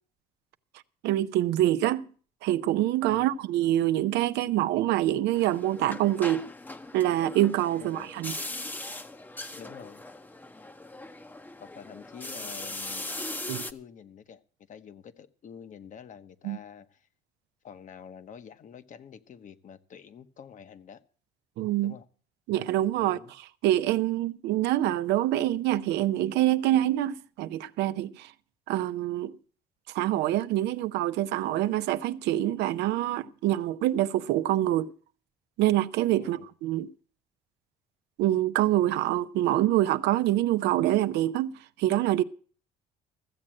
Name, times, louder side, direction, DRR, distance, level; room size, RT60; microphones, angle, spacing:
voice 1, 1.0-2.0 2.4-6.5 6.9-8.4 13.5-13.6 16.4-16.6 21.6-22.0 22.5-23.2 23.6-28.3 28.7-29.3 29.9-34.9 35.6-36.9 38.2-42.2, right 14 dB, 85° right, 0.6 m, -25 dB
sound 1, 5.3-13.7, left 2 dB, 10° left, 0.8 m, -39 dB
voice 2, 7.8-8.1 9.6-10.0 11.6-13.1 13.7-14.4 14.7-17.1 17.6-21.0 21.8-22.0 23.0-23.3 36.2-36.5, left 7 dB, 50° left, 1.0 m, -47 dB
14.5 x 7.6 x 7.5 m
cardioid pair, 110°, 17 cm